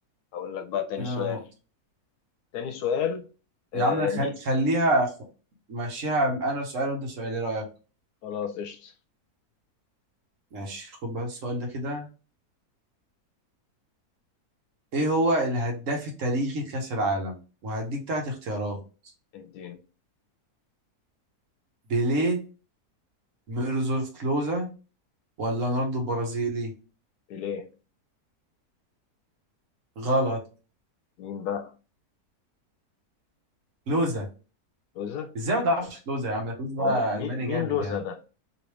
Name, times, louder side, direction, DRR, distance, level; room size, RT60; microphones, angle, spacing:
voice 1, 0.3-1.4 2.5-3.3 3.7-4.3 8.2-8.9 19.3-19.8 27.3-27.7 31.2-31.7 35.0-35.3 36.8-38.2, left 8 dB, 85° left, 1.1 m, -31 dB
voice 2, 1.0-1.4 3.7-5.1 5.7-7.7 10.5-12.1 14.9-18.8 21.9-22.4 23.5-24.7 25.4-26.7 30.0-30.4 33.9-34.3 35.3-37.9, right 1 dB, 60° right, 1.2 m, -27 dB
3.1 x 3.0 x 3.0 m
omnidirectional pair, 1.6 m